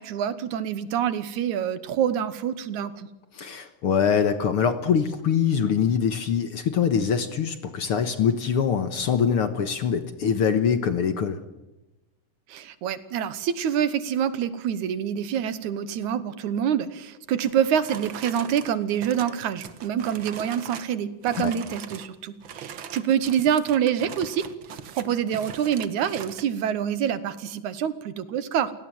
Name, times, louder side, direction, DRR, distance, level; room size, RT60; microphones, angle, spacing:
voice 1, 0.0-3.1 12.5-24.4 24.9-28.8, right 9 dB, 75° right, 14 dB, 2.5 m, -26 dB
voice 2, 3.3-11.4 21.4-21.5, left 7 dB, 55° left, 9 dB, 1.8 m, -23 dB
sound 1, 17.4-21.0 21.2-22.1 22.4-26.5, right 8 dB, 55° right, 1.5 m, -41 dB
29.5 x 17.5 x 7.8 m, 1.0 s
omnidirectional pair, 3.5 m